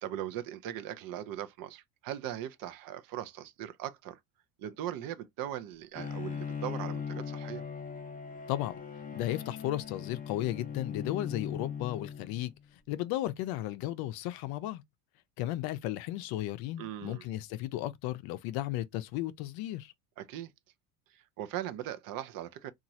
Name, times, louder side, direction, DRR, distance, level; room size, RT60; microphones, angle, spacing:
voice 1, 0.0-4.2 4.6-7.6 16.8-17.2 20.2-20.5 21.1-22.7, right 11 dB, 50° right, 0.6 m, -39 dB
Bowed string instrument, 6.0-12.6, left 6 dB, 20° left, 0.7 m, -39 dB
voice 2, 9.1-12.5 12.9-14.8 15.4-19.9, left 14 dB, 60° left, 0.5 m, -34 dB
2.9 x 2.4 x 2.7 m
supercardioid pair, 100°, 43 cm